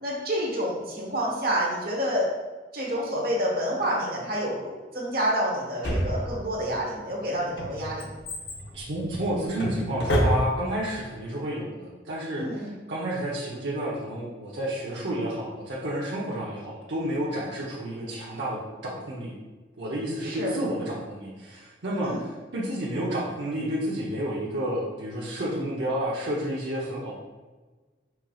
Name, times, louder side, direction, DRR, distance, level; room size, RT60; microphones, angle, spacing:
voice 1, 0.0-2.3 2.7-8.1 12.4-12.7 20.2-20.5 22.0-22.2, equal, 55° right, -3 dB, 1.3 m, -28 dB
Drawer open or close, 5.8-6.7 7.3-10.8 11.1-11.2, equal, 70° left, 0.8 m, -28 dB
voice 2, 8.7-19.3 19.8-27.1, right 1 dB, 85° right, -5 dB, 0.8 m, -30 dB
4.9 x 4.5 x 2.4 m, 1.3 s
head